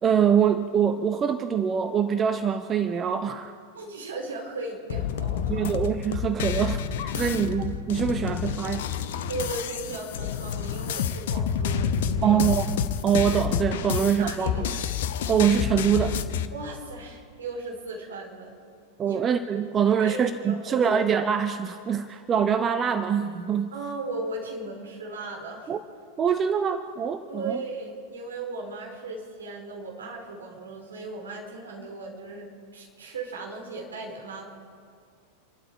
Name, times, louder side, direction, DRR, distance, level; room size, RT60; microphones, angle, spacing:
voice 1, 0.0-3.5 5.5-8.9 12.2-12.6 13.0-14.7 15.3-16.2 19.0-23.7 25.7-25.8 26.2-27.6, right 7 dB, 25° right, 9 dB, 0.7 m, -24 dB
voice 2, 3.7-5.7 7.1-7.3 9.3-12.4 13.9-14.8 16.5-18.6 19.0-19.2 20.0-21.0 23.7-25.7 27.3-34.4, right 3 dB, 70° right, 0 dB, 3.9 m, -37 dB
sound 1, 4.9-16.5, left 8 dB, 55° left, 0.8 m, -29 dB
28.0 x 12.0 x 4.4 m, 2.1 s
figure-of-eight pair, 90°, 0 cm